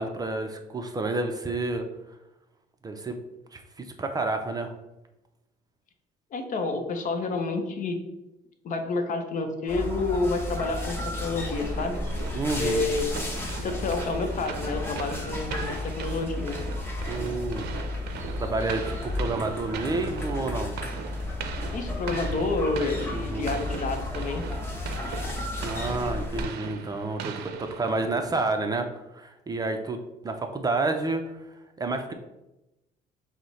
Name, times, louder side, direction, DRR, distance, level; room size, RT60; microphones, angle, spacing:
voice 1, 0.0-1.9 2.8-3.2 3.5-4.7 12.3-12.8 17.1-17.7 18.4-20.8 23.1-23.6 25.6-28.9 29.1-30.0 30.2-32.1, right 3 dB, 20° right, 5 dB, 0.4 m, -30 dB
voice 2, 6.3-8.0 8.6-12.0 12.6-13.1 13.6-16.6 21.7-24.4, left 3 dB, 50° left, 6 dB, 0.7 m, -29 dB
sound 1, 9.7-26.4, left 2 dB, 15° left, 0.9 m, -33 dB
sound 2, 11.6-28.3, right 7 dB, 75° right, 0.5 m, -40 dB
6.1 x 2.1 x 4.0 m, 0.96 s
cardioid pair, 110°, 17 cm